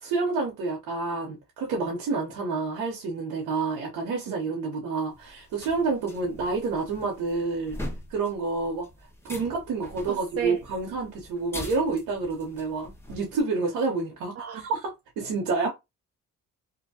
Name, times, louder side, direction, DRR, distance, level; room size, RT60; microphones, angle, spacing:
voice 1, 0.0-7.8 8.1-8.9 9.2-15.7, right 4 dB, 85° right, 0.9 m, -29 dB
sound 1, 5.1-13.4, left 1 dB, 5° left, 1.0 m, -43 dB
voice 2, 10.1-10.6 14.4-14.6, right 9 dB, 45° right, 0.5 m, -33 dB
2.6 x 2.2 x 2.7 m
cardioid pair, 80°, 33 cm